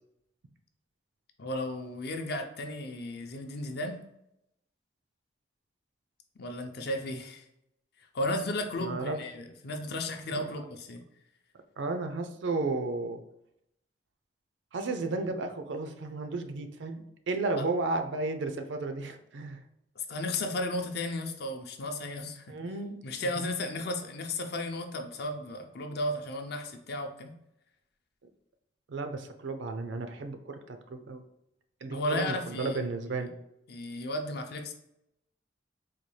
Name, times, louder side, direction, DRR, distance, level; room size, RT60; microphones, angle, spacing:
voice 1, 1.4-4.0 6.4-7.5 8.1-11.0 17.6-17.7 20.0-22.5 23.0-27.3 31.9-32.8 33.7-34.7, left 1 dB, 60° left, 5 dB, 0.5 m, -34 dB
voice 2, 8.8-9.2 10.3-10.5 11.8-13.2 14.7-17.0 17.3-19.6 22.5-23.1 28.9-31.2 31.8-33.3, right 3 dB, 75° right, 7 dB, 0.4 m, -33 dB
4.1 x 2.3 x 3.1 m, 0.81 s
head